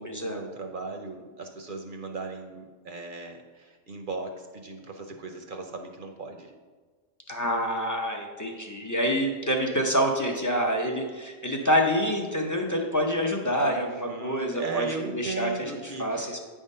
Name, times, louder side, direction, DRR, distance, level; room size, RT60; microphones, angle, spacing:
voice 1, 0.0-6.5 13.6-16.4, right 3 dB, 50° right, 3 dB, 0.7 m, -37 dB
voice 2, 7.3-14.9 15.1-15.7 16.0-16.4, equal, 20° left, 1 dB, 0.5 m, -27 dB
8.9 x 3.6 x 5.4 m, 1.4 s
omnidirectional pair, 1.3 m